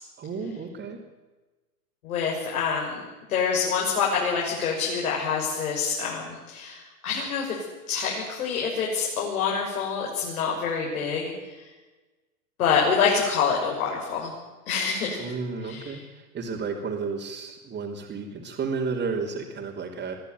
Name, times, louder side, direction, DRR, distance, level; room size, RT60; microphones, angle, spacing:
voice 1, 0.2-1.0 15.2-20.2, right 4 dB, 25° right, -4 dB, 3.3 m, -32 dB
voice 2, 2.0-3.0 3.3-7.5 7.9-11.3 12.6-14.3 14.7-15.3 15.6-15.9, left 6 dB, 70° left, -2 dB, 6.7 m, -26 dB
23.5 x 15.0 x 9.6 m, 1.2 s
hypercardioid pair, 115°, 45 cm